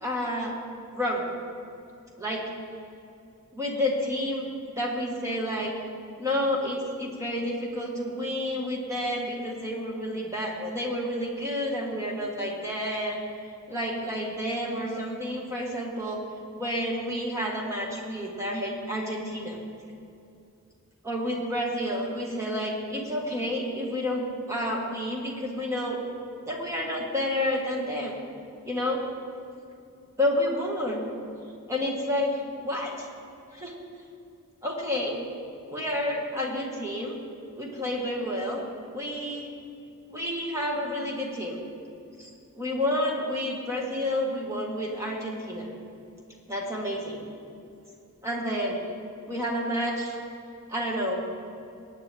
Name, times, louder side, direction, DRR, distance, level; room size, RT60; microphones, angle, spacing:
voice 1, 0.0-0.6 0.9-1.3 2.2-2.4 3.5-4.5 4.8-5.7 6.2-13.2 13.7-16.2 16.6-19.6 21.0-26.0 26.5-28.2 28.6-29.0 30.2-31.1 31.7-33.1 33.5-33.7 34.6-35.2 35.7-37.1 37.6-38.6 38.9-39.5 40.1-41.6 42.2-42.3 42.6-45.7 46.5-47.2 48.2-48.9 49.3-50.2 50.7-51.2, left 1 dB, 15° right, -2 dB, 1.7 m, -30 dB
19.0 x 9.2 x 3.5 m, 2.6 s
head